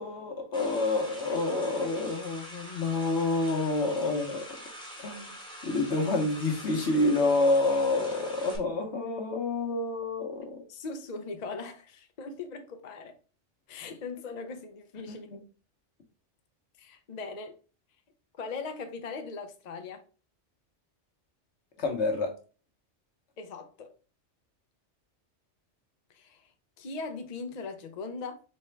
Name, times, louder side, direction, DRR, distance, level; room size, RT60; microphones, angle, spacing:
voice 1, 0.0-4.4 5.0-5.3 5.6-10.6 15.1-15.4 21.8-22.3, left 2 dB, 70° left, 1.3 m, -28 dB
sound 1, 0.5-8.6, equal, 5° left, 1.1 m, -45 dB
voice 2, 10.7-13.1 13.7-15.3 16.8-17.5 18.4-20.0 23.4-23.9 26.1-26.4 26.8-28.4, left 4 dB, 45° left, 0.6 m, -39 dB
4.2 x 3.5 x 3.2 m
omnidirectional pair, 1.2 m